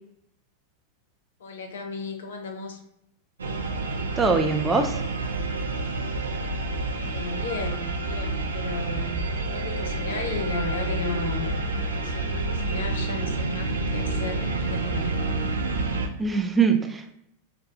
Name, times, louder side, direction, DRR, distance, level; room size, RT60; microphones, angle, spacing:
voice 1, 1.4-2.8 7.0-11.6 11.9-15.1, left 3 dB, 65° left, 4 dB, 0.6 m, -35 dB
sound 1, 3.4-16.1, right 2 dB, 70° right, 0.4 m, -28 dB
voice 2, 4.2-5.0 16.2-17.2, right 5 dB, 15° right, 4 dB, 0.4 m, -22 dB
4.7 x 2.2 x 2.7 m, 0.78 s
figure-of-eight pair, 90°, 0 cm